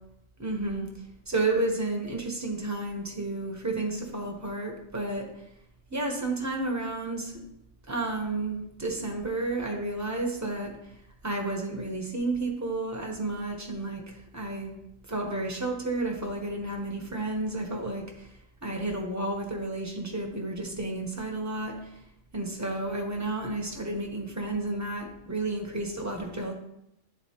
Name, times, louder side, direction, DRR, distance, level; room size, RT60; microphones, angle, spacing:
voice 1, 0.4-0.9 1.3-5.3 5.9-7.4 7.9-10.9 11.2-14.8 15.1-22.0 22.3-26.5, right 2 dB, 15° right, 1 dB, 0.8 m, -31 dB
9.5 x 3.9 x 2.9 m, 0.80 s
omnidirectional pair, 1.3 m